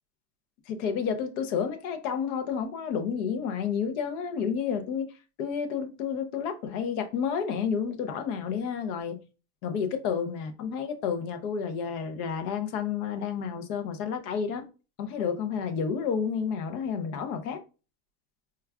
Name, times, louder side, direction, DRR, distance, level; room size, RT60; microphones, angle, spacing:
voice 1, 0.7-5.1 5.4-9.2 9.6-14.6 15.0-17.6, left 6 dB, 80° left, 0.8 m, -30 dB
4.6 x 2.3 x 2.3 m
supercardioid pair, 135°, 44 cm